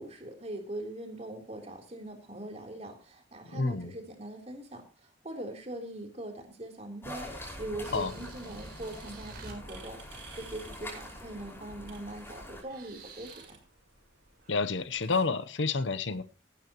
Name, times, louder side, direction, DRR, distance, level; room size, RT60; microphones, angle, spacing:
voice 1, 0.0-13.6, right 1 dB, 35° right, 3.6 m, -42 dB
voice 2, 3.5-3.9 7.9-8.1 14.5-16.2, left 4 dB, 85° left, 0.9 m, -29 dB
sound 1, 7.0-12.6, left 1 dB, 15° left, 5.5 m, -44 dB
sound 2, 7.8-9.6 11.8-12.0 12.4-13.6 14.4-14.6, right 3 dB, 55° right, 4.2 m, -49 dB
sound 3, 8.8-15.2, right 5 dB, 80° right, 5.6 m, -56 dB
16.5 x 12.0 x 3.1 m
head